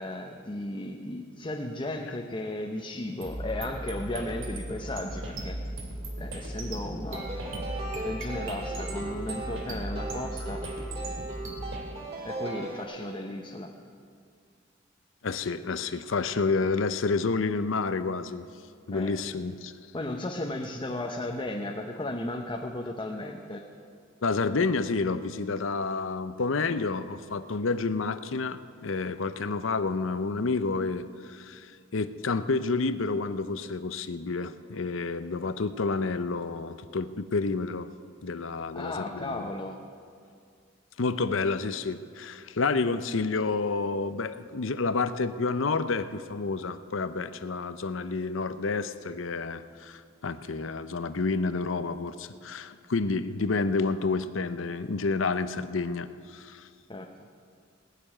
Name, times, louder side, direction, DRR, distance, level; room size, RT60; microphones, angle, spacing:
voice 1, 0.0-5.6 6.2-7.5 8.0-10.6 12.2-13.7 18.9-19.1 19.9-23.6 38.7-39.8 56.9-57.1, left 1 dB, 25° left, 1 dB, 0.8 m, -35 dB
sound 1, 3.2-11.8, right 1 dB, 70° right, 2.7 m, -37 dB
sound 2, 7.1-12.8, right 2 dB, 30° right, 3.2 m, -38 dB
voice 2, 15.2-18.5 18.9-19.7 24.2-37.9 38.2-39.5 41.0-56.7, left 4 dB, 70° left, 12 dB, 0.7 m, -29 dB
18.5 x 6.9 x 9.9 m, 2.2 s
head